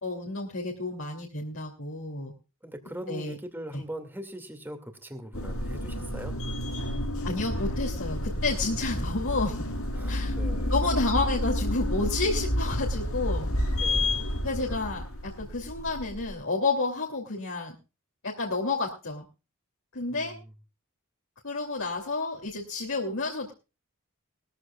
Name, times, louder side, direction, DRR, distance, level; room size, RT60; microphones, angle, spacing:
voice 1, 0.0-2.3 3.1-3.4 3.7-3.8 7.2-9.6 10.1-10.4 10.7-13.5 14.4-17.7 18.2-19.2 19.9-20.3 21.4-23.5, left 3 dB, 65° left, -2 dB, 2.9 m, -30 dB
voice 2, 2.6-6.3 9.9-10.7 13.8-14.4 20.1-20.4, right 1 dB, 10° right, 7 dB, 2.4 m, -41 dB
sound 1, 5.3-16.3, left 1 dB, 80° left, 6.3 m, -30 dB
21.0 x 14.5 x 2.4 m, 0.31 s
head